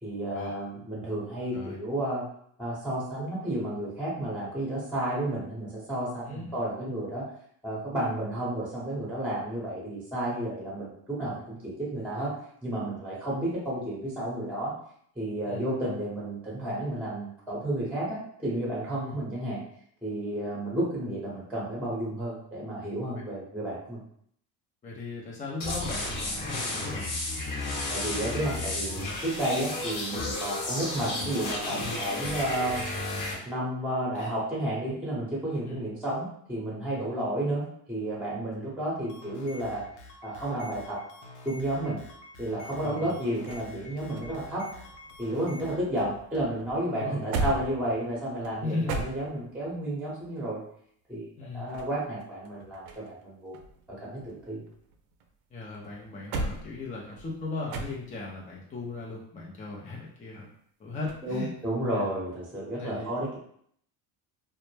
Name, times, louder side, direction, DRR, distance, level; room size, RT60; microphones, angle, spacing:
voice 1, 0.0-2.2 2.6-7.2 7.6-12.3 12.6-14.7 15.2-19.6 20.0-24.0 27.9-32.8 33.4-39.8 40.2-41.0 41.4-42.0 42.4-44.6 45.2-50.6 51.1-51.3 51.5-53.5 54.0-54.6 61.2-63.4, right 1 dB, 5° right, -5 dB, 0.9 m, -32 dB
voice 2, 24.8-27.1 31.8-32.0 34.1-34.3 35.7-35.8 42.8-43.1 46.9-47.3 48.6-49.0 51.4-51.7 55.5-60.5 60.8-61.5 61.9-62.1 62.8-63.1, left 3 dB, 15° left, -3 dB, 0.4 m, -37 dB
sound 1, 25.6-33.3, left 2 dB, 40° left, 0.9 m, -32 dB
sound 2, 39.0-46.5, left 2 dB, 85° left, 0.7 m, -48 dB
sound 3, 42.7-45.8 46.1-49.7 51.4-53.2 53.5-55.3 55.7-58.4 61.0-61.3, right 3 dB, 70° right, 0.6 m, -38 dB
2.1 x 2.0 x 3.1 m, 0.66 s
supercardioid pair, 85°, 49 cm